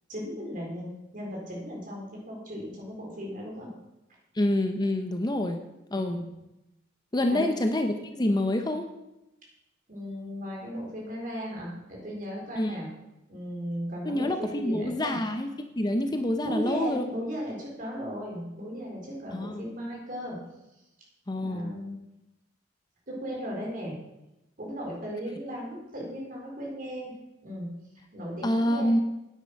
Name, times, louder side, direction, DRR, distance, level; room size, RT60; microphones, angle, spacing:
voice 1, 0.1-3.7 5.9-6.3 7.3-7.6 9.9-12.9 13.3-15.2 16.4-20.4 21.4-22.0 23.1-23.9 24.6-27.1 27.4-27.7 28.1-29.0, equal, 45° right, -2 dB, 4.0 m, -36 dB
voice 2, 4.3-5.6 5.9-6.2 7.1-8.9 12.6-12.8 14.1-15.5 15.8-17.0 19.3-19.6 21.3-21.7 28.4-29.0, left 1 dB, 20° left, 6 dB, 0.6 m, -27 dB
9.4 x 9.1 x 5.2 m, 0.93 s
head